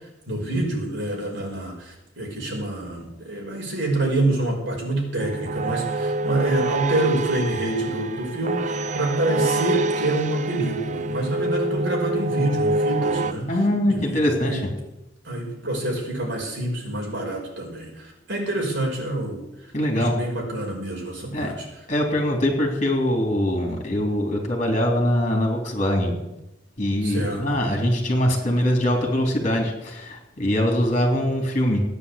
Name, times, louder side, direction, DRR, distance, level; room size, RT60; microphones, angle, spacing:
voice 1, 0.3-13.5 13.9-14.6 15.2-19.4 19.9-21.7 27.0-27.6, right 1 dB, 60° right, -1 dB, 5.5 m, -27 dB
sound 1, 5.2-13.3, right 2 dB, 35° right, 0.5 m, -26 dB
voice 2, 13.5-14.6 19.7-20.1 21.3-21.5 21.9-26.2 26.8-31.8, left 1 dB, 35° left, 2 dB, 3.5 m, -22 dB
14.5 x 9.9 x 8.5 m, 0.91 s
head